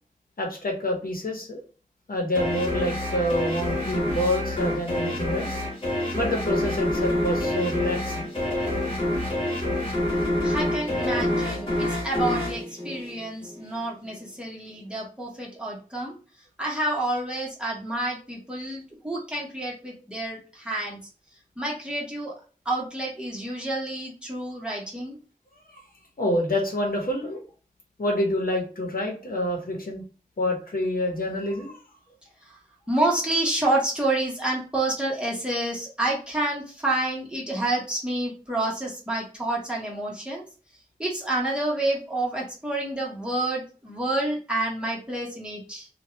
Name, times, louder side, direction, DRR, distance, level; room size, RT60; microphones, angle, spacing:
voice 1, 0.4-1.6 2.1-5.5 6.1-8.3 25.7-25.8 26.2-27.4 28.0-30.0 30.4-31.8, left 1 dB, 75° left, 0 dB, 1.0 m, -27 dB
sound 1, 2.3-13.6, left 1 dB, 35° left, 1.5 m, -27 dB
voice 2, 10.4-16.2 16.6-21.0 21.6-22.3 22.6-25.2 32.4-32.6 32.9-40.4 41.0-45.9, right 2 dB, 5° right, -4 dB, 1.3 m, -28 dB
2.8 x 2.4 x 3.2 m, 0.37 s
wide cardioid pair, 55°, 15 cm